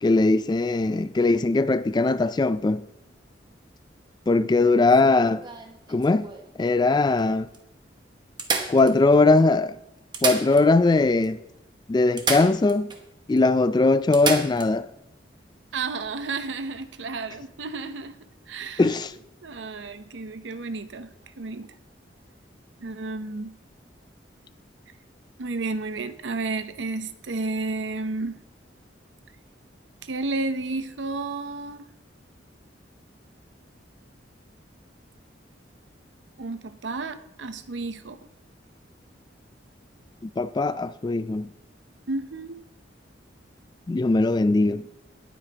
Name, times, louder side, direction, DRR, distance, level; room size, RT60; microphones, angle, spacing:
voice 1, 0.0-2.8 4.3-5.4 5.9-6.3 6.6-7.5 8.7-9.8 10.2-11.4 11.9-12.9 13.3-14.9 18.8-19.1 40.4-41.5 43.9-44.8, left 3 dB, 25° left, 0.3 m, -20 dB
sound 1, 4.9-6.5 7.2-7.3 7.5-7.6 8.4-9.4 10.0-11.0 11.2-11.3 12.2-13.0 13.4-13.5 14.1-14.7 16.7-16.8, right 4 dB, 25° right, 1.1 m, -30 dB
voice 2, 15.7-18.1 18.5-18.8 19.4-21.7 22.8-23.5 25.4-28.4 30.0-31.9 36.4-38.2 42.1-42.6, right 3 dB, 80° right, 0.7 m, -32 dB
18.5 x 8.2 x 2.9 m
head